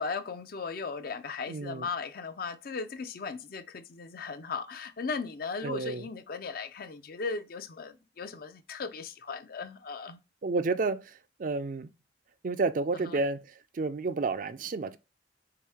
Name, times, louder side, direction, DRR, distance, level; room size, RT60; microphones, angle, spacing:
voice 1, 0.0-10.2 13.0-13.2, left 4 dB, 55° left, 0.5 m, -37 dB
voice 2, 1.5-1.9 5.6-6.0 10.4-11.1 11.4-11.9 12.4-13.5 13.7-15.0, right 3 dB, 50° right, 0.4 m, -30 dB
4.7 x 2.7 x 3.4 m
head